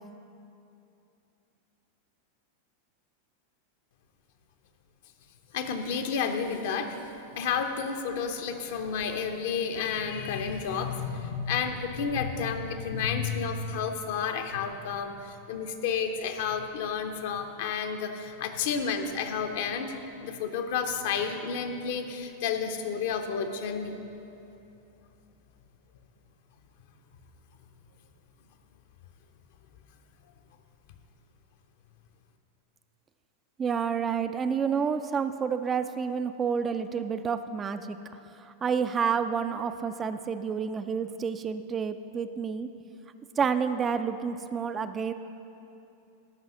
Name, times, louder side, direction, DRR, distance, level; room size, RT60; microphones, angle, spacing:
voice 1, 5.5-7.0 7.4-19.9 20.2-23.9, left 6 dB, 55° left, 6 dB, 0.8 m, -31 dB
voice 2, 33.6-38.0 38.3-42.7 43.4-45.1, right 6 dB, 20° right, 10 dB, 0.3 m, -29 dB
12.5 x 5.5 x 6.2 m, 2.8 s
figure-of-eight pair, 90°, 0 cm